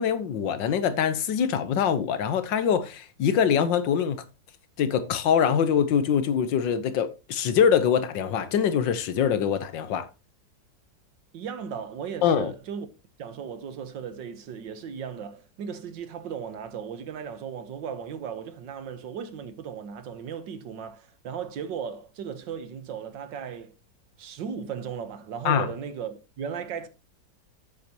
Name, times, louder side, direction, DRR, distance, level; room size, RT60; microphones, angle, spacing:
voice 1, 0.0-4.2 4.8-10.1 12.2-12.5 25.5-25.7, left 8 dB, 85° left, 1.7 m, -24 dB
voice 2, 11.3-12.9 13.2-23.7 24.2-26.9, right 7 dB, 85° right, 1.8 m, -36 dB
10.5 x 8.4 x 2.9 m
omnidirectional pair, 2.0 m